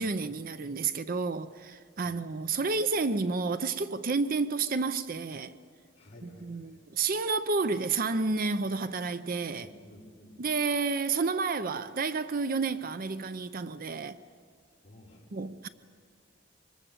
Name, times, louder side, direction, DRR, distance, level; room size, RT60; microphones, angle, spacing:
voice 1, 0.0-5.5 6.2-9.7 10.4-14.2 15.3-15.7, right 4 dB, 45° right, 0.6 m, -30 dB
voice 2, 6.0-6.8 9.5-10.4 14.8-15.2, left 1 dB, 35° left, 5.7 m, -53 dB
25.0 x 20.5 x 7.3 m
head